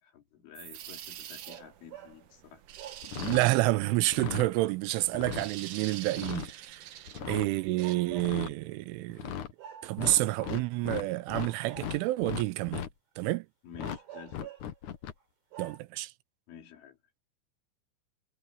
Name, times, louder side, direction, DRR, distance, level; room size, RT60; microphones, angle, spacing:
voice 1, 0.0-2.6 13.6-14.5 16.5-17.0, left 8 dB, 85° left, 6.2 m, -51 dB
sound 1, 0.5-7.9, right 11 dB, 70° right, 2.0 m, -46 dB
sound 2, 1.4-2.2 2.8-3.9 7.2-8.5 9.6-10.7 11.3-12.3 13.8-14.8 15.2-15.3 15.5-15.8, right 9 dB, 55° right, 5.2 m, -47 dB
sound 3, 3.0-3.5 4.0-4.5 5.0-5.5 6.0-6.5 7.1-7.5 8.1-8.5 9.1-9.5 10.0-11.5 11.8-12.9 13.7-14.0 14.3-15.1, left 9 dB, 65° left, 2.0 m, -37 dB
voice 2, 3.2-6.9 7.3-9.3 9.8-12.9 13.2-13.5 15.6-16.1, right 18 dB, 90° right, 3.3 m, -29 dB
omnidirectional pair, 5.4 m